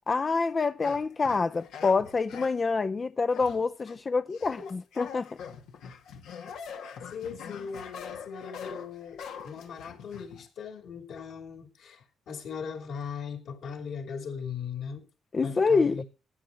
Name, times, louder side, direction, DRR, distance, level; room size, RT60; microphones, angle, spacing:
voice 1, 0.1-5.3 15.3-16.0, left 4 dB, 35° left, 0.6 m, -26 dB
sound 1, 0.8-2.7 3.3-4.0 4.3-10.5, left 7 dB, 85° left, 2.5 m, -43 dB
voice 2, 7.1-15.0 15.4-16.0, left 6 dB, 70° left, 5.4 m, -39 dB
16.0 x 10.5 x 4.7 m
cardioid pair, 90°, 0 cm